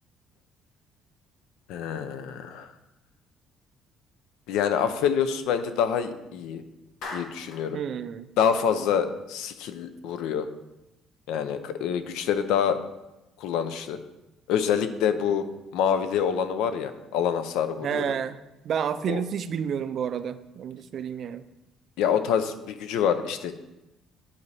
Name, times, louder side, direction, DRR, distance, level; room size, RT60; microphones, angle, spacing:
voice 1, 1.7-2.7 4.5-6.6 7.1-7.8 8.4-10.5 11.3-12.8 13.4-14.0 14.5-15.4 15.7-18.2 19.1-19.2 22.0-23.5, left 8 dB, 90° left, 10 dB, 0.5 m, -26 dB
Clapping, 7.0-7.7, left 3 dB, 70° left, 1.1 m, -38 dB
voice 2, 7.7-8.3 17.8-18.4 18.6-21.4, right 8 dB, 45° right, 12 dB, 0.3 m, -30 dB
9.7 x 4.0 x 3.3 m, 0.97 s
cardioid pair, 155°, 0 cm